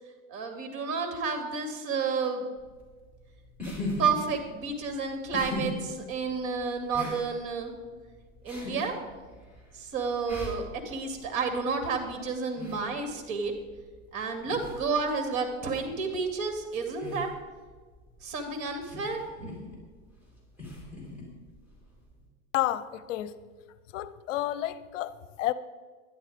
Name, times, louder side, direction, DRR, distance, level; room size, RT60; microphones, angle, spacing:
voice 1, 0.3-2.5 4.0-7.7 8.4-8.9 9.7-13.5 14.1-17.3 18.2-19.5, right 4 dB, 45° right, 2.6 m, -31 dB
sound 1, 2.6-22.3, left 1 dB, 5° right, 4.4 m, -42 dB
voice 2, 22.5-23.3 23.9-25.5, left 14 dB, 65° left, 0.7 m, -30 dB
12.0 x 10.5 x 5.0 m
hypercardioid pair, 120°, 40 cm